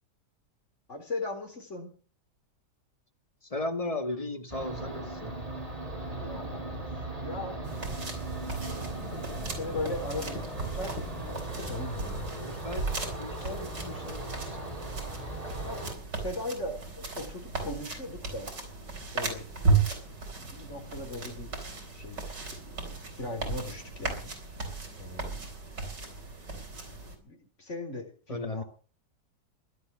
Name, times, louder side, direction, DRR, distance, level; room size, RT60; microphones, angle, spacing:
voice 1, 0.9-1.9 6.1-6.9 7.2-7.6 9.5-12.3 15.6-18.5 19.1-19.6 20.4-21.6 21.9-24.3 25.0-25.4 27.2-28.6, left 2 dB, 40° left, 4.1 m, -39 dB
voice 2, 3.5-5.3 12.3-12.9 13.2-14.6 14.8-14.9 28.3-28.6, left 2 dB, 20° left, 1.3 m, -36 dB
sound 1, 4.5-15.9, right 2 dB, 20° right, 3.2 m, -38 dB
sound 2, 7.6-27.2, right 4 dB, 75° right, 4.7 m, -35 dB
sound 3, 9.1-12.0, left 2 dB, 80° left, 3.6 m, -46 dB
16.5 x 11.5 x 6.1 m
omnidirectional pair, 1.9 m